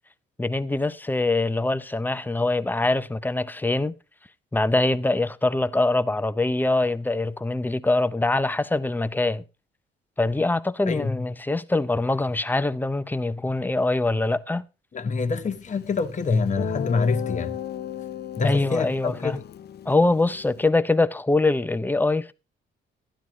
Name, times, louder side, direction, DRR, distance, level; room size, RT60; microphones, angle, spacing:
voice 1, 0.4-3.9 4.5-9.4 10.2-14.7 18.4-19.4 19.9-22.3, left 2 dB, 10° left, 0.5 m, -23 dB
voice 2, 10.9-11.2 14.9-17.6 18.3-19.4, left 4 dB, 40° left, 1.1 m, -25 dB
Guitar, 16.0-16.1 16.6-20.7, left 10 dB, 55° left, 0.6 m, -34 dB
12.0 x 11.0 x 3.1 m
cardioid pair, 90°, 20 cm